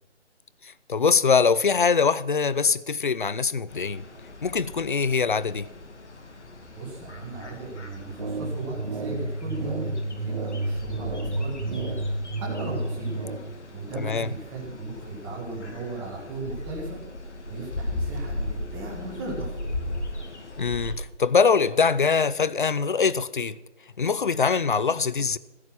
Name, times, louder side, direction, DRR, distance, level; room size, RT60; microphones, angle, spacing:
voice 1, 0.6-4.0 4.4-5.7 14.0-14.3 20.6-23.6 24.0-25.4, left 5 dB, 45° left, 0.5 m, -23 dB
sound 1, 3.7-21.0, left 2 dB, 70° left, 2.4 m, -37 dB
voice 2, 6.7-12.0 12.4-13.2 13.7-17.0 17.5-19.6, right 3 dB, 5° right, 1.7 m, -36 dB
sound 2, 8.2-13.4, right 2 dB, 40° right, 1.8 m, -31 dB
15.5 x 7.0 x 6.1 m
hypercardioid pair, 170°, 36 cm